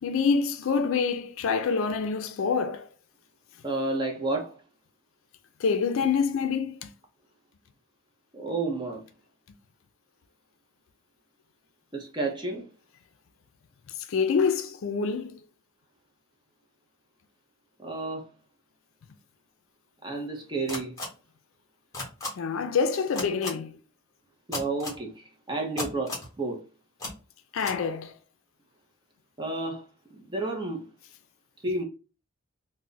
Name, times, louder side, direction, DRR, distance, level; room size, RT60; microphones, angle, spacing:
voice 1, 0.0-2.9 5.6-6.9 14.1-15.4 22.4-23.8 27.5-28.1, left 5 dB, 70° left, 0.4 m, -26 dB
voice 2, 3.6-4.6 8.3-9.0 11.9-12.7 17.8-18.3 20.0-21.0 24.5-26.6 29.4-29.8 30.1-30.9 31.6-31.8, right 2 dB, 20° right, 0.5 m, -31 dB
sound 1, 20.7-21.1 21.9-22.3 23.1-23.5 24.5-25.0 25.8-26.3 27.0-27.1 27.6-27.7, left 2 dB, 15° left, 0.9 m, -33 dB
2.3 x 2.1 x 3.8 m
head